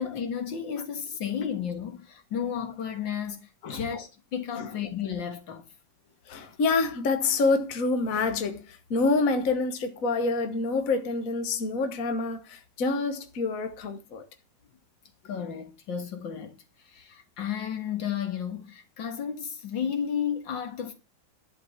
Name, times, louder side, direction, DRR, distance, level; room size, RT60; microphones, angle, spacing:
voice 1, 0.0-5.6 15.2-16.6 16.9-20.9, left 8 dB, 75° left, 2.3 m, -33 dB
voice 2, 6.3-14.2, left 3 dB, 50° left, 1.5 m, -27 dB
11.5 x 5.2 x 7.0 m
omnidirectional pair, 2.1 m